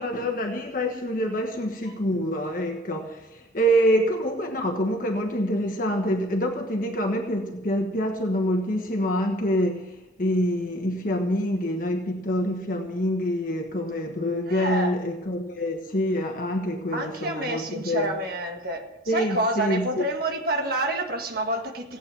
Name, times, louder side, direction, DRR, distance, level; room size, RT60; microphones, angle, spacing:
voice 1, 0.0-18.0 19.1-20.0, equal, 45° left, 3 dB, 1.3 m, -26 dB
voice 2, 14.5-14.9 16.9-22.0, right 2 dB, 50° right, 3 dB, 1.8 m, -28 dB
17.0 x 8.5 x 7.3 m, 1.0 s
head